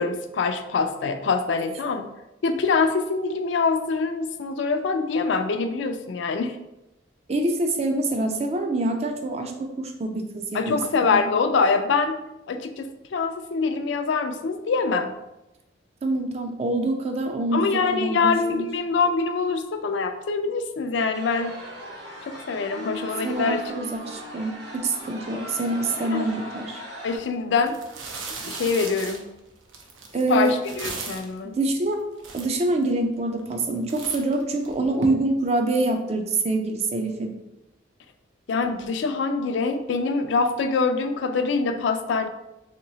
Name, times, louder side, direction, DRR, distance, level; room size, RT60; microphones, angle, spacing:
voice 1, 0.0-2.1 2.4-6.6 10.5-12.1 12.5-15.1 17.5-21.5 22.5-23.6 26.1-26.3 27.0-27.8 28.4-29.3 30.3-31.6 38.5-42.3, left 4 dB, 70° left, 7 dB, 0.4 m, -24 dB
voice 2, 7.3-10.8 16.0-18.6 23.2-26.8 30.1-30.5 31.4-32.0 32.3-37.4, right 2 dB, 35° right, 4 dB, 0.4 m, -25 dB
sound 1, 21.1-27.2, equal, 65° right, 1.3 m, -38 dB
sound 2, 27.0-27.2 27.6-31.4 31.9-32.0 32.2-32.9 33.4-33.6 33.9-35.1, right 4 dB, 90° right, 0.6 m, -37 dB
3.0 x 2.9 x 3.8 m, 0.93 s
head